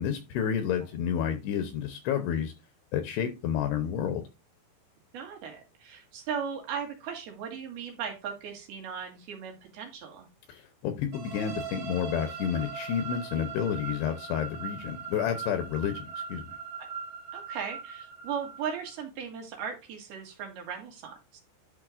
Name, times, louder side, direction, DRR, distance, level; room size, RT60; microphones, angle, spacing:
voice 1, 0.0-2.5 2.9-4.2 10.5-16.5, left 8 dB, 75° left, 7 dB, 2.7 m, -30 dB
voice 2, 5.1-10.3 16.8-16.9 17.3-21.4, right 7 dB, 65° right, 3 dB, 3.4 m, -37 dB
sound 1, 11.1-18.9, right 6 dB, 45° right, 3.7 m, -40 dB
11.0 x 6.2 x 2.5 m, 0.27 s
omnidirectional pair, 5.3 m